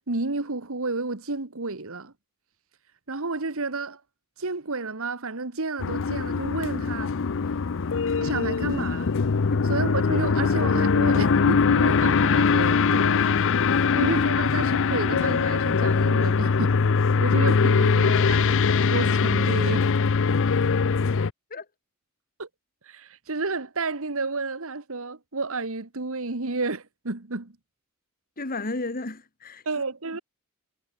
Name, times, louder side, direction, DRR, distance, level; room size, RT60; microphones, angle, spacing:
voice 1, 0.1-2.1 3.1-4.0 4.4-7.1 8.2-9.1 9.7-13.4 13.9-16.8 17.2-19.9 22.4-22.5 22.8-27.6 29.6-30.2, right 3 dB, 65° right, 1.7 m, -31 dB
sound 1, 5.8-21.3, left 5 dB, 60° left, 0.6 m, -22 dB
voice 2, 21.2-21.7 28.4-29.8, left 2 dB, 40° left, 2.0 m, -34 dB
head